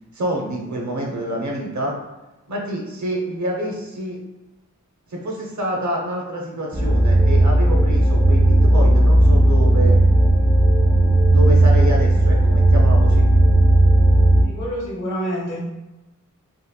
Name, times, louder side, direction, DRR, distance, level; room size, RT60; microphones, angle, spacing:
voice 1, 0.1-2.0 2.5-4.2 5.1-10.0 11.2-13.3, equal, 65° right, 0 dB, 0.7 m, -27 dB
sound 1, 6.7-14.4, right 1 dB, 15° right, 0.4 m, -14 dB
voice 2, 14.4-15.6, equal, 75° left, -4 dB, 1.0 m, -27 dB
2.9 x 2.8 x 2.2 m, 1.0 s
wide cardioid pair, 90°, 31 cm